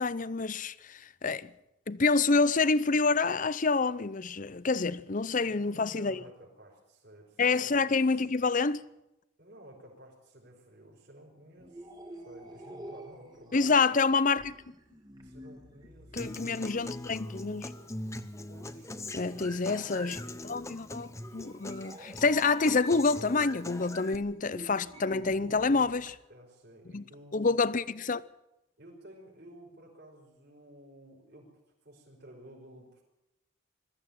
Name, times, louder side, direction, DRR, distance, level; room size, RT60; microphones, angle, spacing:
voice 1, 0.0-1.5 1.9-6.2 7.4-8.8 13.5-14.6 16.1-17.7 19.1-26.1 26.9-27.0 27.3-28.2, left 4 dB, 40° left, 0.6 m, -27 dB
voice 2, 5.4-7.9 9.4-13.9 15.2-16.3 18.5-20.2 25.4-25.9 26.3-27.6 28.8-31.5 31.8-33.0, equal, 50° right, 5.6 m, -52 dB
sound 1, 11.6-26.2, right 2 dB, 20° right, 2.0 m, -50 dB
Human voice / Acoustic guitar, 16.2-24.1, left 1 dB, 15° left, 0.9 m, -42 dB
21.5 x 14.5 x 8.9 m
head